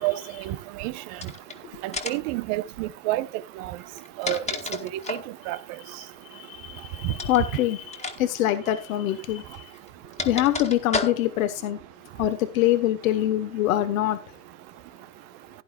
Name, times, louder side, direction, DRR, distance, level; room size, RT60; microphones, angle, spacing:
voice 1, 0.4-0.9 1.8-3.3 3.6-3.8 4.2-4.4 5.1-5.2 5.5-5.6 7.0-7.1, right 17 dB, 65° right, 1.0 m, -28 dB
sound 1, 1.1-1.5 1.9-2.3 3.8-5.3 7.1-7.4 7.9-8.2 8.4-8.6 9.5-11.5, left 3 dB, 15° left, 1.9 m, -32 dB
voice 2, 6.3-9.6 10.2-11.8 12.2-14.2, left 13 dB, 80° left, 1.4 m, -24 dB
16.0 x 10.5 x 2.4 m
hypercardioid pair, 70°, 41 cm